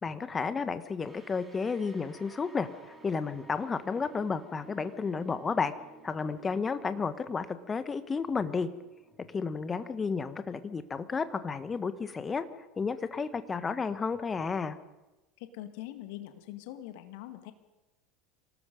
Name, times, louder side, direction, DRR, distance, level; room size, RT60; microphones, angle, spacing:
voice 1, 0.0-5.7 6.0-8.7 9.3-12.4 12.8-14.8, left 5 dB, 25° left, 12 dB, 1.5 m, -32 dB
sound 1, 1.0-11.9, right 2 dB, 10° right, 5.7 m, -56 dB
voice 2, 15.4-17.5, left 13 dB, 60° left, 9 dB, 1.9 m, -43 dB
26.0 x 18.5 x 5.4 m, 1.1 s
figure-of-eight pair, 75°, 0 cm